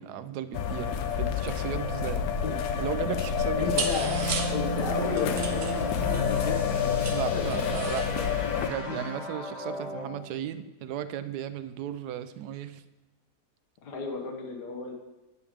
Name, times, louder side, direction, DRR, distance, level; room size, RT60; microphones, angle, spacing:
voice 1, 0.0-2.2 2.8-3.9 7.1-8.1 8.6-12.8, right 10 dB, 85° right, 12 dB, 1.1 m, -35 dB
sound 1, 0.5-8.7, left 8 dB, 70° left, 1.1 m, -29 dB
sound 2, 3.0-3.1 3.3-8.1, right 6 dB, 60° right, 1.1 m, -37 dB
voice 2, 3.6-4.2 4.5-6.6 7.3-7.6 8.8-9.0 13.8-14.9, left 4 dB, 90° left, 1 dB, 1.6 m, -34 dB
sound 3, 4.0-10.2, left 1 dB, 30° left, 1.3 m, -34 dB
9.6 x 3.5 x 7.1 m, 1.1 s
omnidirectional pair, 1.7 m